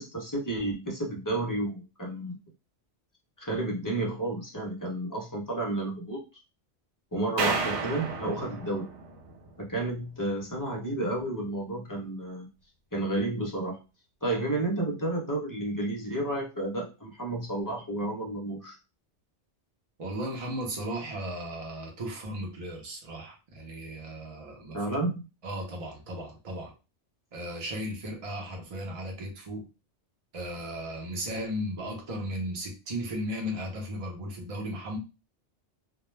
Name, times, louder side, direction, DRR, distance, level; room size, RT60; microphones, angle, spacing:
voice 1, 0.0-2.4 3.4-6.2 7.1-8.8 9.6-12.5 12.9-13.8 14.2-18.8 24.7-25.3, right 2 dB, 25° left, -2 dB, 0.5 m, -31 dB
sound 1, 7.4-9.7, right 4 dB, 85° right, 0.9 m, -32 dB
voice 2, 20.0-25.0 25.4-26.7 27.3-29.6 30.3-35.0, equal, 40° right, 1 dB, 0.6 m, -36 dB
2.2 x 2.1 x 3.1 m, 0.30 s
omnidirectional pair, 1.2 m